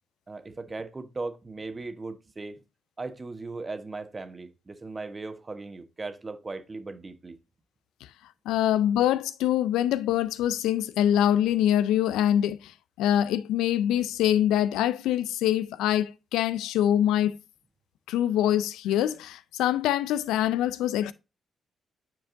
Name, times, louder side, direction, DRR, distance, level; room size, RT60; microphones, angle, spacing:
voice 1, 0.3-2.6 3.0-7.4, right 3 dB, 35° right, 1.1 m, -38 dB
voice 2, 8.5-12.7 13.0-17.3 18.1-21.1, left 11 dB, 80° left, 0.4 m, -24 dB
9.1 x 4.6 x 2.6 m
hypercardioid pair, 45°, 0 cm